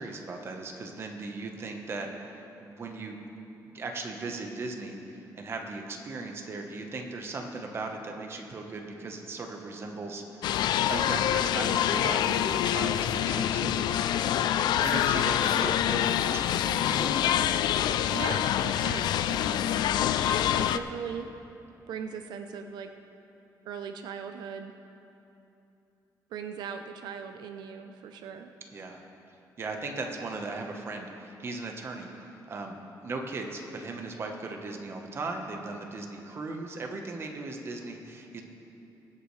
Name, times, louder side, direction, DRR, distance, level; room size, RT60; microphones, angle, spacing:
voice 1, 0.0-3.2 3.7-10.5 10.9-17.2 20.4-20.6 28.7-29.0 29.6-32.1 32.5-32.8 33.0-38.4, right 3 dB, 35° right, 2 dB, 1.1 m, -37 dB
sound 1, 10.4-20.8, left 11 dB, 85° left, 0.3 m, -26 dB
voice 2, 18.1-19.8 20.6-21.3 21.9-22.9 23.7-24.7 26.3-28.5, right 6 dB, 90° right, 6 dB, 0.6 m, -39 dB
22.5 x 8.3 x 3.2 m, 2.9 s
cardioid pair, 160°, 7 cm